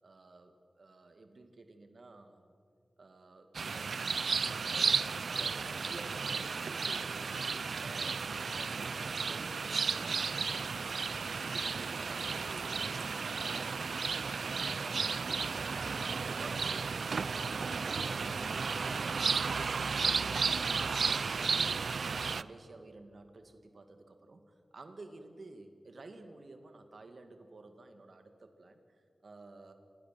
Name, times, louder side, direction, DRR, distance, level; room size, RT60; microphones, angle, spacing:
voice 1, 0.0-2.5 3.0-4.2 4.6-7.3 7.8-11.0 11.4-12.9 13.2-13.8 14.7-29.7, right 2 dB, 60° right, 7 dB, 2.1 m, -53 dB
sound 1, 3.5-22.4, right 5 dB, 85° right, 0.5 m, -33 dB
26.5 x 21.0 x 7.6 m, 2.5 s
wide cardioid pair, 95°, 0 cm